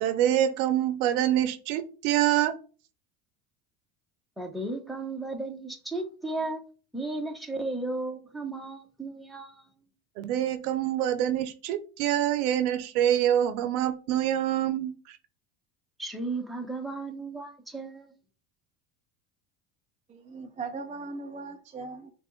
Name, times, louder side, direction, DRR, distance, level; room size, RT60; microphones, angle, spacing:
voice 1, 0.0-2.6 10.2-15.2, right 11 dB, 85° right, 0.8 m, -26 dB
voice 2, 4.4-6.6 6.9-9.6 16.0-18.1, right 2 dB, ahead, 1.0 m, -34 dB
voice 3, 20.1-22.1, right 4 dB, 20° right, 0.4 m, -39 dB
6.6 x 2.5 x 3.1 m
supercardioid pair, 100°, 43 cm